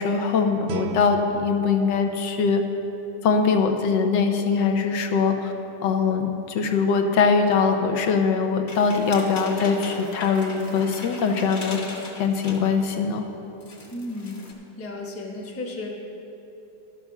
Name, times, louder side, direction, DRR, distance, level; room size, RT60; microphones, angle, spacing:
voice 1, 0.0-2.6 3.2-5.5 5.8-11.8 12.2-13.2, left 5 dB, 85° left, 5 dB, 1.5 m, -22 dB
Guitar, 0.6-3.4, right 6 dB, 80° right, 1.2 m, -38 dB
sound 1, 8.7-12.9 13.3-13.4 13.6-14.5, left 2 dB, 40° left, 1.2 m, -38 dB
voice 2, 13.9-14.4 14.8-15.9, left 2 dB, 10° left, -1 dB, 0.8 m, -33 dB
12.0 x 6.8 x 6.0 m, 3.0 s
omnidirectional pair, 1.9 m